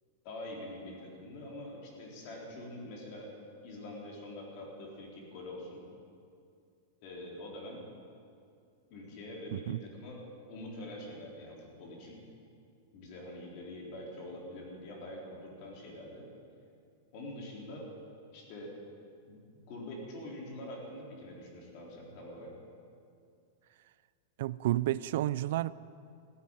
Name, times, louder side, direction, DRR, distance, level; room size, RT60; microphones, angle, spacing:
voice 1, 0.2-3.3 3.6-5.8 7.0-7.8 8.9-10.2 10.5-12.3 12.9-16.3 17.1-17.9 18.3-18.7 19.3-22.5, left 1 dB, 40° left, -2 dB, 4.0 m, -45 dB
voice 2, 9.5-9.8 24.4-25.8, right 14 dB, 60° right, 18 dB, 0.3 m, -31 dB
15.5 x 9.8 x 9.1 m, 2.4 s
supercardioid pair, 165°, 0 cm